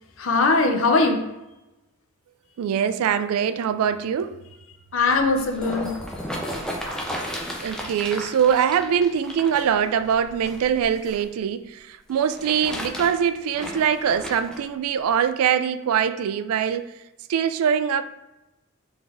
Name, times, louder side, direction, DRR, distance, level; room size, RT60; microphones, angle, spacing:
voice 1, 0.2-1.2 4.9-5.9, left 3 dB, 60° left, 0.6 m, -20 dB
voice 2, 2.6-4.4 7.6-16.9 17.3-18.0, right 8 dB, 80° right, 0.3 m, -23 dB
sound 1, 5.2-11.2 12.1-14.6 15.3-15.4, equal, 5° left, 0.5 m, -34 dB
3.9 x 3.4 x 3.7 m
head